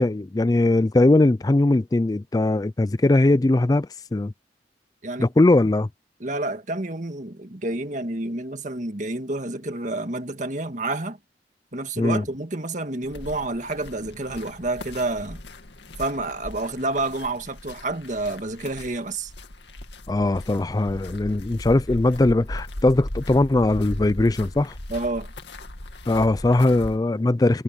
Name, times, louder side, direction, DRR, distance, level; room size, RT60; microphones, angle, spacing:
voice 1, 0.0-4.3 5.2-5.9 12.0-12.2 20.1-24.7 26.1-27.6, left 2 dB, 20° left, 0.4 m, -20 dB
voice 2, 6.2-11.2 11.7-15.4 16.0-19.3 24.9-25.3, right 2 dB, 45° right, 1.8 m, -29 dB
sound 1, 13.0-27.0, left 1 dB, 85° left, 2.3 m, -38 dB
head